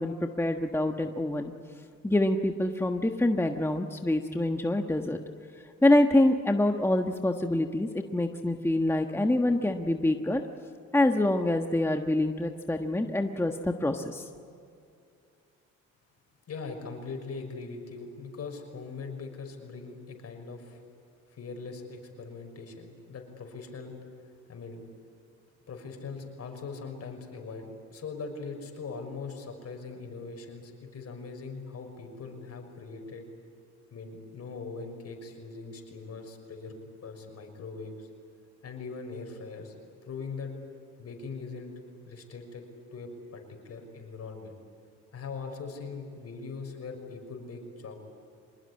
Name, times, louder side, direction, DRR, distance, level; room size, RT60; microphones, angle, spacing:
voice 1, 0.0-1.5 2.0-5.2 5.8-10.4 10.9-14.3, left 1 dB, 10° left, 4 dB, 1.4 m, -26 dB
voice 2, 16.5-20.8 21.3-23.9 24.5-24.8 25.7-33.2 33.9-36.8 37.0-38.1 38.6-39.7 40.0-40.5 41.0-41.7 42.1-42.6 42.9-44.5 45.1-47.9, left 4 dB, 55° left, 4 dB, 6.1 m, -41 dB
26.0 x 20.5 x 9.8 m, 2.4 s
cardioid pair, 90°, 30 cm